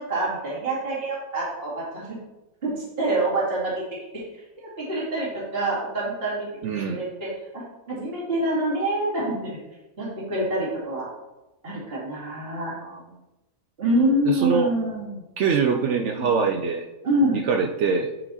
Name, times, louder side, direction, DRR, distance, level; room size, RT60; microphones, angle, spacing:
voice 1, 0.0-2.2 2.6-3.8 4.8-6.5 6.9-9.5 10.0-11.1 11.6-12.8 13.8-15.2 16.2-16.3 17.0-17.4, right 1 dB, 40° right, -6 dB, 2.5 m, -26 dB
voice 2, 6.6-7.0 12.8-13.0 14.2-14.7 15.4-16.9 17.3-18.1, right 5 dB, 65° right, 5 dB, 0.8 m, -23 dB
9.5 x 4.6 x 4.1 m, 1.0 s
omnidirectional pair, 1.5 m